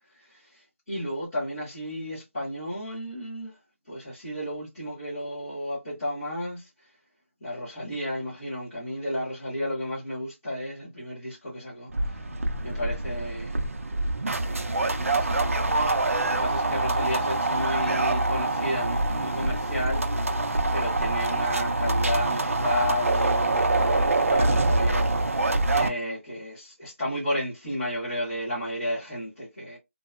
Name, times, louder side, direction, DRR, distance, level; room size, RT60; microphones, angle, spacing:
voice 1, 0.2-0.6 0.9-3.5 3.9-6.7 7.4-12.2 12.6-13.6 14.7-15.7 16.2-20.4 20.7-25.1 25.7-29.8, left 1 dB, 10° left, 0.9 m, -32 dB
sound 1, 11.9-25.9, right 2 dB, 70° right, 0.5 m, -25 dB
2.7 x 2.2 x 2.3 m
figure-of-eight pair, 180°, 8 cm